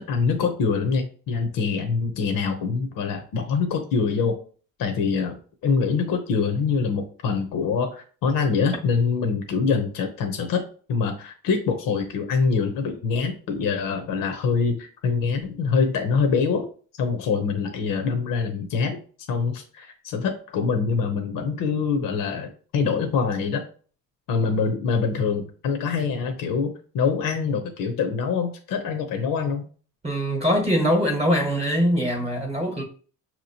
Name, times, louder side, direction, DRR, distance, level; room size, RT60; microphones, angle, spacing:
voice 1, 0.0-4.4 4.8-16.7 16.9-19.0 19.3-23.6 24.3-29.6, left 5 dB, 65° left, 0.8 m, -24 dB
voice 2, 30.0-32.8, equal, 15° right, 1.0 m, -22 dB
5.9 x 2.9 x 2.8 m
cardioid pair, 120°, 35 cm